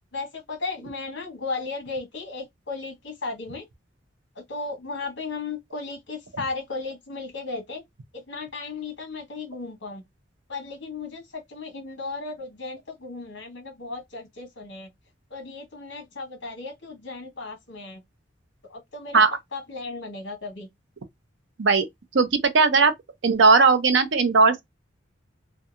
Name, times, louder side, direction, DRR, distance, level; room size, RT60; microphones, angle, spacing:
voice 1, 0.1-3.6 4.3-7.8 8.1-10.0 10.5-14.9 15.3-18.0 18.7-19.2 19.5-20.7, left 3 dB, 65° left, 1.0 m, -35 dB
voice 2, 22.1-22.9 23.2-24.6, right 4 dB, 65° right, 0.5 m, -18 dB
2.7 x 2.2 x 2.4 m
head